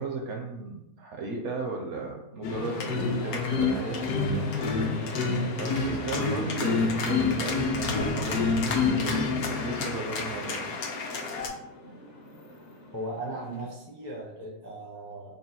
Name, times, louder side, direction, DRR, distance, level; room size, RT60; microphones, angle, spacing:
voice 1, 0.0-4.5 5.5-10.7, right 3 dB, 65° right, 1 dB, 0.7 m, -36 dB
sound 1, 2.4-11.5, left 4 dB, 80° left, 1.1 m, -28 dB
sound 2, 2.6-13.7, left 1 dB, 50° left, 0.7 m, -46 dB
voice 2, 12.9-15.4, right 1 dB, 30° left, -4 dB, 0.3 m, -37 dB
3.8 x 2.3 x 4.0 m, 0.83 s
omnidirectional pair, 1.6 m